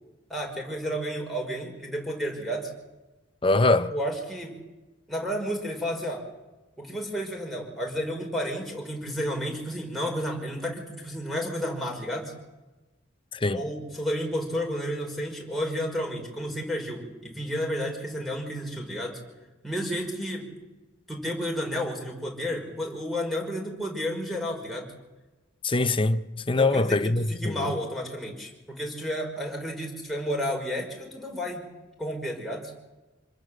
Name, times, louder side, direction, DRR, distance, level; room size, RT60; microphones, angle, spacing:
voice 1, 0.3-2.7 3.9-4.5 5.1-6.2 6.8-12.3 13.5-19.2 19.6-20.5 21.1-24.9 26.5-31.6 32.0-32.7, equal, ahead, 5.6 m, -31 dB
voice 2, 3.4-3.9 13.4-13.6 25.6-26.2 26.5-27.5, left 2 dB, 30° left, 0.9 m, -22 dB
26.5 x 21.0 x 7.9 m
head